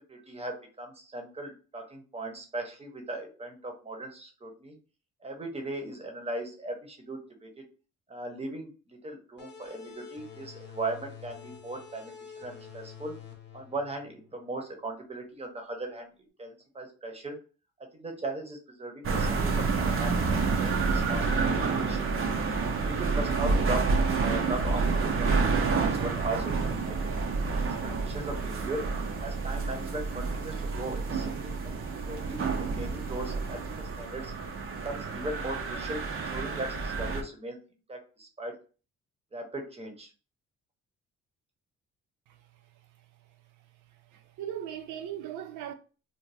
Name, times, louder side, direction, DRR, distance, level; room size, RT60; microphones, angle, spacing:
voice 1, 0.1-4.8 5.2-7.6 8.1-13.1 13.5-16.1 16.4-17.4 18.0-22.1 22.7-23.8 24.2-27.2 27.6-27.7 28.0-28.8 29.2-34.3 34.8-37.6 37.9-38.5 39.3-40.1, right 2 dB, 20° right, 0.9 m, -38 dB
sound 1, 9.4-14.6, left 8 dB, 35° left, 0.9 m, -48 dB
sound 2, 19.0-37.2, right 4 dB, 45° right, 0.6 m, -29 dB
voice 2, 44.1-45.7, right 10 dB, 85° right, 0.5 m, -38 dB
2.7 x 2.1 x 3.2 m
cardioid pair, 90°, 30 cm